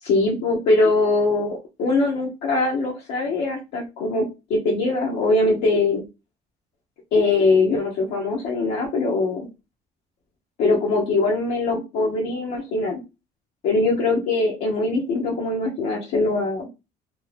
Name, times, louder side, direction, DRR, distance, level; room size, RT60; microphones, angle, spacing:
voice 1, 0.0-6.0 7.1-9.5 10.6-13.0 13.6-16.7, left 3 dB, 75° left, -2 dB, 0.7 m, -22 dB
2.6 x 2.1 x 3.1 m, 0.27 s
cardioid pair, 110°, 17 cm